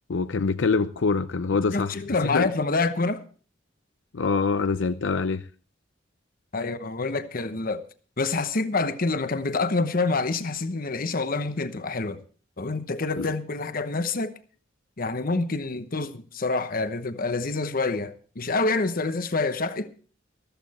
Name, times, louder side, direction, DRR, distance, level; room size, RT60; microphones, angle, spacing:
voice 1, 0.1-1.9 2.2-2.5 4.1-5.5 13.2-13.3, left 4 dB, 80° left, 0.6 m, -25 dB
voice 2, 1.7-3.2 6.5-7.8 8.2-12.2 12.6-14.3 15.0-19.9, left 3 dB, 50° left, 1.0 m, -27 dB
14.0 x 14.0 x 4.2 m
head